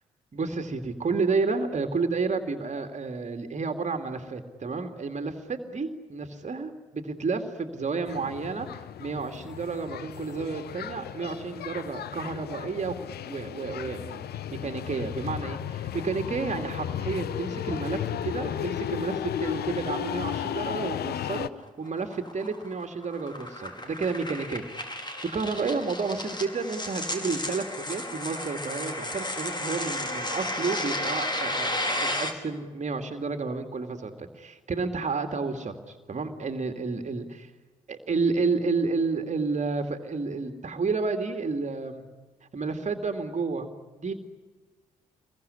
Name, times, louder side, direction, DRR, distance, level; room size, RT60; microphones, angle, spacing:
voice 1, 0.3-12.9 13.2-24.6 25.1-37.5 37.9-42.0 42.5-43.7 44.0-44.1, right 4 dB, 40° right, 6 dB, 2.6 m, -31 dB
sound 1, 8.1-21.5, left 10 dB, 60° left, 1.0 m, -34 dB
sound 2, 21.6-32.3, left 1 dB, 25° left, 5.1 m, -33 dB
26.0 x 22.5 x 10.0 m, 1.3 s
hypercardioid pair, 40°, 18 cm